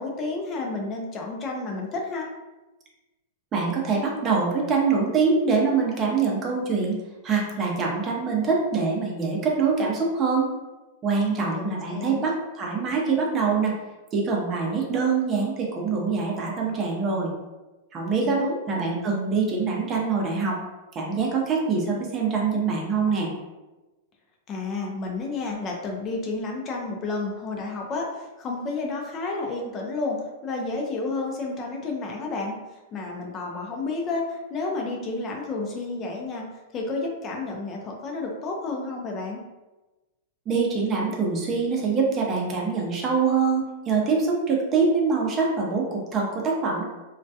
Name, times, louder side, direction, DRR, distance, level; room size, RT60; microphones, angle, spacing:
voice 1, 0.0-2.3 11.3-12.3 18.2-18.6 24.5-30.2 30.4-32.6 32.9-36.4 36.7-39.4, left 3 dB, 30° left, 0 dB, 0.4 m, -31 dB
voice 2, 3.5-10.5 11.0-13.8 14.1-17.3 17.9-18.4 18.7-20.6 20.9-23.3 40.5-46.8, right 4 dB, 30° right, -1 dB, 0.6 m, -24 dB
2.2 x 2.1 x 2.6 m, 1.1 s
hypercardioid pair, 135°, 0 cm